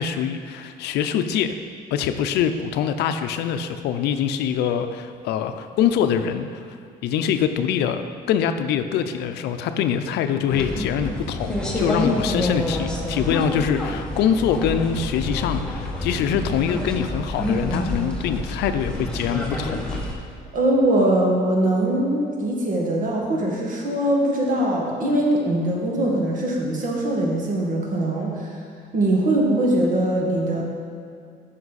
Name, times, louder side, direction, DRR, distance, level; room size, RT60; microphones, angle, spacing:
voice 1, 0.0-1.6 1.9-6.6 7.0-19.8, left 8 dB, 80° left, 8 dB, 0.5 m, -24 dB
sound 1, 10.5-20.1, left 1 dB, 5° left, 1.3 m, -27 dB
voice 2, 20.5-28.5 28.9-30.6, right 1 dB, 50° right, -2 dB, 1.9 m, -22 dB
9.5 x 6.0 x 4.1 m, 2.2 s
cardioid pair, 110°, 17 cm